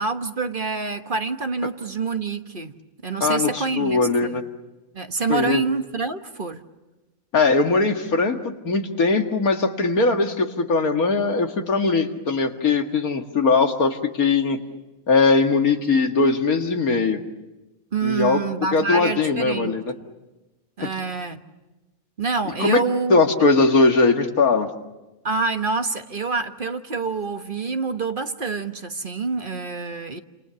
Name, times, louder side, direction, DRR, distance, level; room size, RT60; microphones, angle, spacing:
voice 1, 0.0-2.7 3.0-4.4 4.9-6.6 17.9-19.8 20.8-21.4 22.2-23.2 25.2-30.2, right 4 dB, 40° right, 7 dB, 1.4 m, -27 dB
voice 2, 3.2-4.4 5.3-5.6 7.3-14.6 15.1-17.2 18.0-18.4 18.7-19.8 22.6-22.8 23.1-24.7, left 3 dB, 85° left, 5 dB, 2.4 m, -20 dB
29.0 x 27.5 x 7.0 m, 1.1 s
omnidirectional pair, 1.5 m